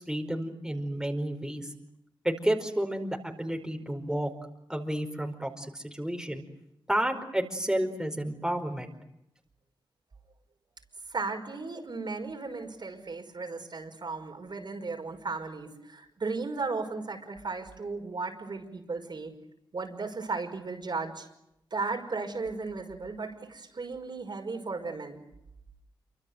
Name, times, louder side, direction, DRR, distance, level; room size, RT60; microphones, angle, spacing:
voice 1, 0.0-1.7 2.2-4.3 4.7-6.4 6.9-8.9, right 1 dB, 5° right, 3 dB, 4.8 m, -31 dB
voice 2, 11.1-19.3 19.7-21.3 21.7-25.2, right 4 dB, 55° right, 3 dB, 5.6 m, -35 dB
28.0 x 25.0 x 7.9 m, 0.83 s
cardioid pair, 65°, 9 cm